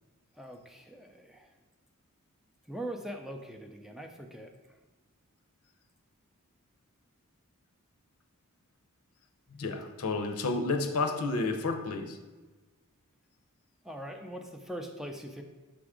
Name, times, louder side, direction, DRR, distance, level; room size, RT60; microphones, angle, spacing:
voice 1, 0.4-1.5 2.7-4.5 13.8-15.4, right 1 dB, ahead, 3 dB, 0.4 m, -41 dB
voice 2, 9.5-12.2, left 3 dB, 75° left, 6 dB, 0.7 m, -31 dB
6.0 x 3.5 x 4.9 m, 1.2 s
head